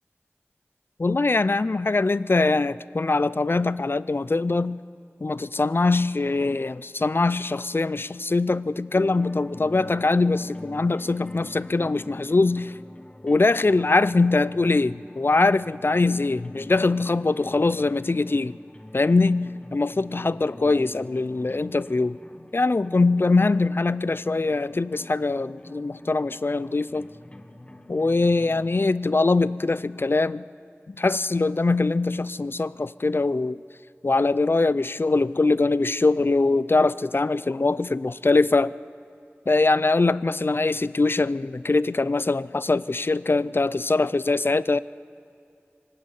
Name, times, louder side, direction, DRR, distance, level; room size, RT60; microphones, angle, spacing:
voice 1, 1.0-4.8 5.2-12.7 13.2-18.6 18.9-22.2 22.5-27.1 27.9-30.4 30.9-33.6 34.0-38.7 39.5-44.8, left 3 dB, 55° left, 18 dB, 0.4 m, -22 dB
sound 1, 8.9-28.9, left 1 dB, 25° left, 1.2 m, -46 dB
25.0 x 19.0 x 5.6 m, 2.6 s
wide cardioid pair, 55°, 5 cm